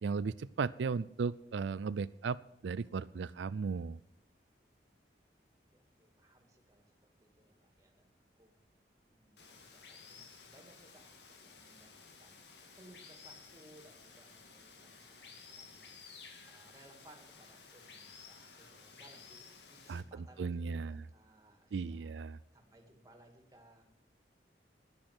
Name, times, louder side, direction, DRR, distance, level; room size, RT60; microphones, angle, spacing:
voice 1, 0.0-4.0 19.9-20.0 20.4-21.0 21.7-22.4, right 5 dB, 90° right, 15 dB, 0.4 m, -36 dB
voice 2, 5.7-8.7 9.1-12.4 12.8-22.2 22.5-23.8, right 1 dB, 20° right, 4 dB, 2.3 m, -62 dB
Water, 9.4-20.0, left 5 dB, 75° left, 1.9 m, -55 dB
11.0 x 10.5 x 7.8 m, 0.69 s
head